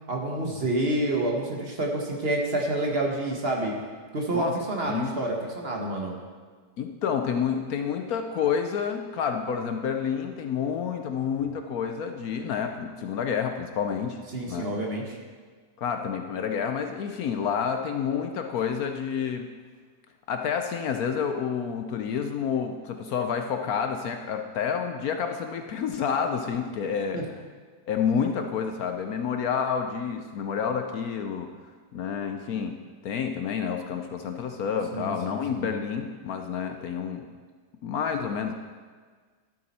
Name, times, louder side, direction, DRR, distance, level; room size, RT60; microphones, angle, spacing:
voice 1, 0.1-3.7 4.1-6.2 14.3-15.2 27.1-27.2 34.9-35.6, right 2 dB, 40° right, 0 dB, 1.3 m, -28 dB
voice 2, 4.8-5.2 6.8-14.2 14.5-14.7 15.8-19.5 20.3-27.2 27.9-31.5 31.9-32.8 33.0-37.2 37.8-38.5, left 7 dB, 65° left, 6 dB, 1.0 m, -29 dB
12.5 x 8.3 x 4.2 m, 1.5 s
omnidirectional pair, 1.8 m